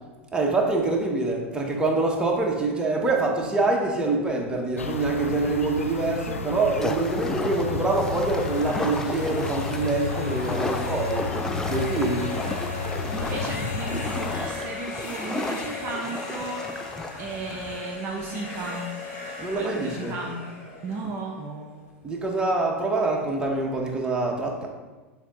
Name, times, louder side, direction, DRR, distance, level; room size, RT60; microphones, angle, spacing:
voice 1, 0.3-11.3 11.7-12.3 19.4-20.2 22.0-24.7, right 3 dB, 10° right, -1 dB, 1.0 m, -25 dB
sound 1, 4.8-14.5, left 4 dB, 80° left, 0.4 m, -32 dB
sound 2, 6.8-17.8, left 2 dB, 5° left, 0.4 m, -34 dB
sound 3, 7.9-21.8, left 3 dB, 40° left, 1.4 m, -38 dB
voice 2, 13.1-16.6 17.2-18.9 19.5-22.0, right 3 dB, 35° right, 1 dB, 0.6 m, -35 dB
6.7 x 2.9 x 5.0 m, 1.2 s
figure-of-eight pair, 85°, 7 cm